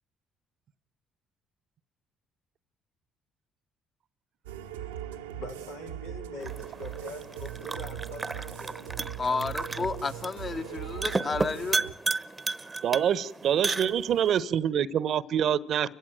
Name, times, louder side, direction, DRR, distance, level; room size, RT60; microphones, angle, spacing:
voice 1, 4.5-5.0 5.3-9.4, left 2 dB, 90° left, 0 dB, 3.3 m, -44 dB
sound 1, 4.5-11.9, right 11 dB, 85° right, 0.9 m, -40 dB
sound 2, 6.4-14.4, right 3 dB, 25° right, 0.9 m, -34 dB
voice 2, 9.2-11.8, left 4 dB, 40° left, 10 dB, 1.5 m, -31 dB
voice 3, 12.8-15.9, right 9 dB, 60° right, 20 dB, 0.9 m, -26 dB
29.5 x 16.0 x 9.2 m, 0.88 s
hypercardioid pair, 50°, 0 cm